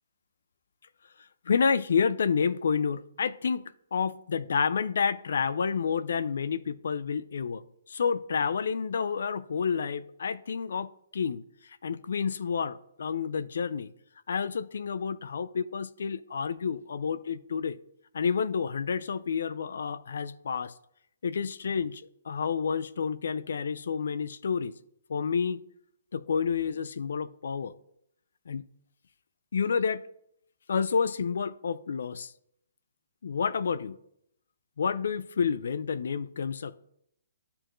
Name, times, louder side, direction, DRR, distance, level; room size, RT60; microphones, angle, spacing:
voice 1, 1.5-3.6 3.9-7.6 7.9-11.4 11.8-13.9 14.3-17.8 18.1-20.7 21.2-24.7 25.1-25.6 26.1-27.7 28.5-28.6 29.5-30.0 30.7-32.3 33.2-34.0 34.8-36.8, left 6 dB, 70° left, 0.4 m, -29 dB
11.0 x 4.3 x 3.1 m
hypercardioid pair, 160°, 0 cm